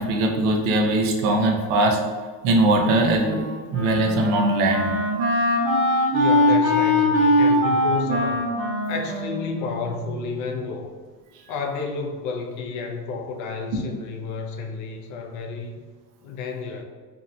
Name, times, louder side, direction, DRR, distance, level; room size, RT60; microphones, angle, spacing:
voice 1, 0.0-2.0 2.4-3.4 3.7-4.9 13.7-13.9, right 2 dB, 45° right, 2 dB, 0.5 m, -20 dB
Wind instrument woodwind instrument, 3.2-10.4, left 1 dB, 85° right, 0.8 m, -22 dB
voice 2, 6.1-8.5 8.9-10.9 11.5-15.7 16.2-16.8, left 4 dB, 40° left, 3 dB, 0.4 m, -31 dB
2.8 x 2.1 x 2.3 m, 1.5 s
hypercardioid pair, 95°, 46 cm